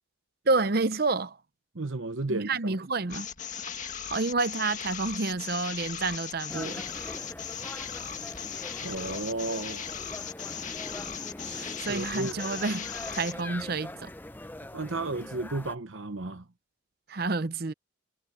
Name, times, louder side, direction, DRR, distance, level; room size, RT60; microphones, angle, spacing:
voice 1, 0.5-1.4 2.3-3.3 4.1-6.8 11.5-14.1 17.1-17.7, right 3 dB, 50° right, 0.7 m, -29 dB
voice 2, 1.7-2.8 8.8-9.8 11.4-12.4 14.7-16.4, right 2 dB, 70° right, 1.0 m, -33 dB
sound 1, 3.1-13.4, left 8 dB, 35° left, 1.9 m, -38 dB
sound 2, 6.5-15.7, left 1 dB, 10° left, 0.6 m, -42 dB
head